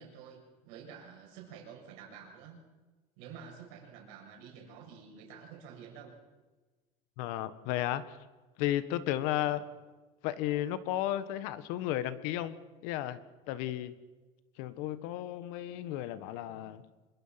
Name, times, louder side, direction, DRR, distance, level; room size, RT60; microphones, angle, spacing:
voice 1, 0.0-2.6 3.2-6.1 9.3-9.6 16.5-16.7, right 7 dB, 75° right, 1 dB, 6.8 m, -50 dB
voice 2, 7.2-8.0 8.6-9.6 10.2-12.6 12.8-13.2 13.5-13.9 14.6-16.8, left 13 dB, 70° left, 13 dB, 1.6 m, -33 dB
26.5 x 22.5 x 6.0 m, 1.2 s
cardioid pair, 180°, 14 cm